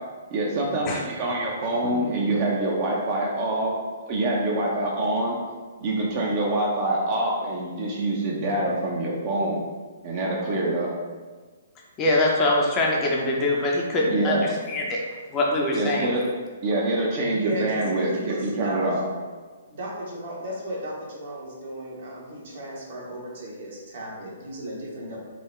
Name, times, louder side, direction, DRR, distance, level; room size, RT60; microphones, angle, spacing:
voice 1, 0.3-3.8 4.1-5.4 5.8-9.6 10.0-10.9 14.1-14.4 15.7-16.2 16.6-19.1, right 2 dB, 45° right, -3 dB, 0.6 m, -25 dB
voice 2, 12.0-15.0 15.3-16.1, left 2 dB, 25° left, -1 dB, 0.6 m, -23 dB
voice 3, 17.4-18.9 19.7-25.2, right 1 dB, 60° right, -4 dB, 1.1 m, -35 dB
3.8 x 2.2 x 3.1 m, 1.4 s
hypercardioid pair, 130°, 0 cm